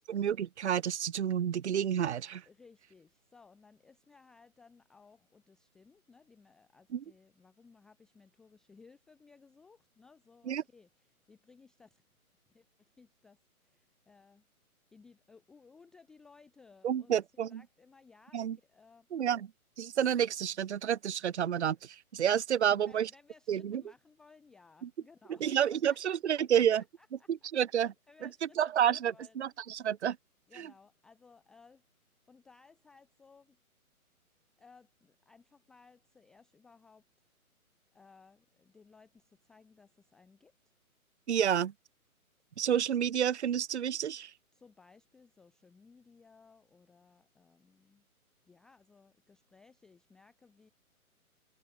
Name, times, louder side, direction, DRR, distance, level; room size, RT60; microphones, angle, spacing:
voice 1, 0.1-2.4 6.9-7.0 10.5-10.6 16.8-17.6 18.3-18.6 19.1-19.5 19.8-23.1 23.5-23.8 25.4-26.8 27.3-27.9 28.2-28.3 28.6-30.2 30.6-30.7 41.3-41.7 42.6-44.3, right 9 dB, 50° right, 0.9 m, -30 dB
voice 2, 2.5-12.0 12.5-12.7 13.0-14.5 14.9-19.1 22.6-27.3 27.8-29.4 30.5-31.8 32.3-33.6 34.6-37.0 37.9-40.7 44.5-48.1 48.4-50.7, left 4 dB, ahead, 0.6 m, -61 dB
figure-of-eight pair, 140°, 44 cm